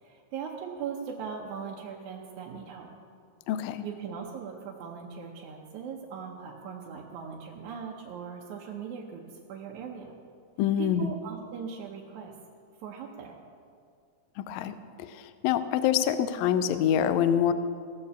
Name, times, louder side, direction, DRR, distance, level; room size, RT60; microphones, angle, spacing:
voice 1, 0.0-2.9 3.8-9.2 9.5-10.2 10.8-12.3 12.8-13.4, right 6 dB, 75° right, -1 dB, 2.2 m, -39 dB
voice 2, 3.5-3.8 10.6-11.1 14.4-17.5, left 9 dB, 80° left, 12 dB, 1.7 m, -26 dB
17.5 x 6.9 x 6.9 m, 2.3 s
omnidirectional pair, 3.5 m